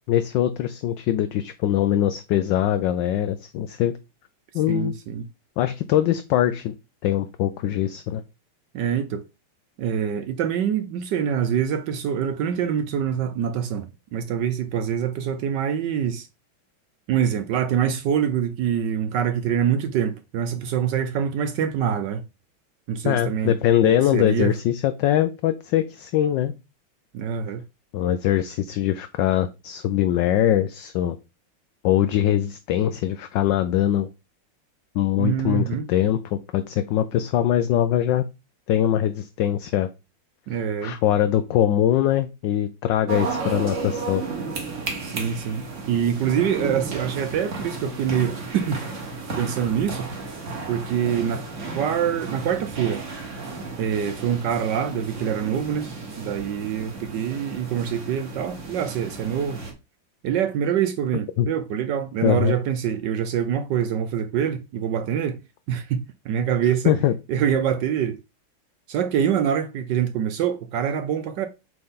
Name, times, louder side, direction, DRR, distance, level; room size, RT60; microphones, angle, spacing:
voice 1, 0.1-3.9 4.5-4.9 5.6-6.7 7.0-8.2 23.0-26.5 27.9-31.2 31.8-34.1 34.9-38.2 38.7-39.9 40.8-44.2 61.4-61.5 62.2-62.5 66.9-67.1, left 11 dB, 75° left, 1.1 m, -22 dB
voice 2, 4.7-5.3 8.7-9.2 9.8-16.3 17.1-22.2 22.9-23.5 23.8-24.5 27.1-27.6 35.2-35.9 40.5-41.0 45.0-48.8 49.4-50.1 50.7-51.5 51.7-53.0 53.8-59.6 60.2-65.4 65.7-67.0 67.3-68.2 68.9-71.5, right 8 dB, 70° right, 1.1 m, -25 dB
sound 1, 43.1-59.7, right 4 dB, 40° right, 1.6 m, -33 dB
7.7 x 4.0 x 3.7 m
omnidirectional pair, 2.3 m